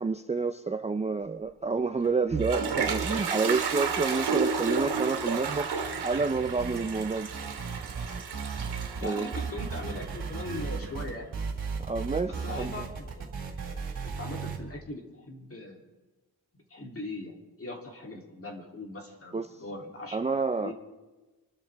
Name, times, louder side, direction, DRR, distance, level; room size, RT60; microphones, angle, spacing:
voice 1, 0.0-7.3 9.0-9.3 11.8-12.9 19.3-19.6 20.1-20.7, right 4 dB, 15° right, 0.5 m, -29 dB
Toilet flush, 2.0-10.9, right 5 dB, 90° right, 2.3 m, -32 dB
sound 1, 6.6-7.1 7.3-9.0 9.3-14.6, right 5 dB, 55° right, 3.3 m, -35 dB
voice 2, 9.0-11.3 12.4-13.3 14.0-15.8 16.7-20.3 20.6-20.7, left 2 dB, 35° left, 3.0 m, -40 dB
27.5 x 13.0 x 3.4 m
wide cardioid pair, 160°, 38 cm